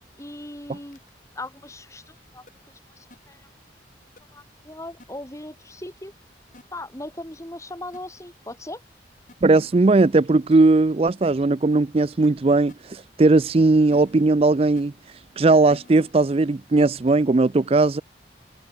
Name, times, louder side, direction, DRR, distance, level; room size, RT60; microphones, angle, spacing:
voice 1, 0.2-1.0 1.3-2.4 3.0-3.5 4.3-6.1 6.7-8.8, left 1 dB, 15° left, 2.4 m, -38 dB
sound 1, 0.9-1.1 2.5-2.6 3.1-3.2 4.2-4.3 5.0-5.1 6.5-6.6 7.9-8.0 9.3-9.4 10.1-10.2 10.5-10.6 12.2-12.3 12.7-12.8 13.9-14.3 14.8-14.9 15.7-16.1 16.9-17.1, left 1 dB, 45° left, 5.5 m, -48 dB
voice 2, 9.4-14.9 15.4-18.0, right 3 dB, 35° right, 0.4 m, -18 dB
head